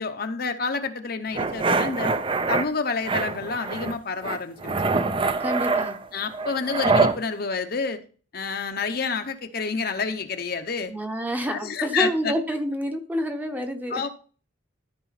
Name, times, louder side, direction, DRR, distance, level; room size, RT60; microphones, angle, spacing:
voice 1, 0.0-2.1 2.5-4.7 6.1-8.0 8.3-10.9 11.5-12.3 13.9-14.1, left 4 dB, 50° left, 0.7 m, -28 dB
sound 1, 1.3-2.7 3.0-4.0 4.2-7.2, right 3 dB, 25° right, 0.5 m, -24 dB
voice 2, 5.4-6.0 10.9-14.1, equal, 10° right, 0.8 m, -28 dB
13.0 x 4.9 x 4.1 m
head